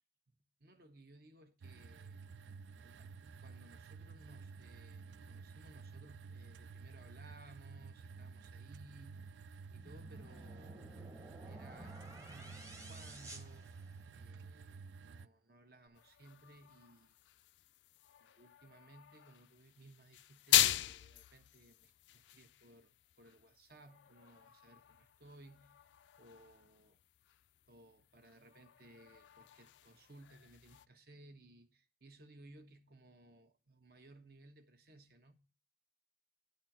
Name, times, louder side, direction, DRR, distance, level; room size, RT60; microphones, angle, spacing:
voice 1, 0.3-2.2 2.8-3.1 3.4-10.9 11.5-13.7 14.1-17.2 18.2-25.8 26.2-27.0 27.7-35.4, right 1 dB, 55° right, 1.2 m, -60 dB
sound 1, 1.6-15.3, right 4 dB, 90° right, 0.4 m, -52 dB
sound 2, 9.8-14.4, right 1 dB, 20° right, 1.0 m, -53 dB
sound 3, 15.9-30.9, left 15 dB, 85° left, 0.4 m, -40 dB
10.5 x 4.2 x 7.3 m
head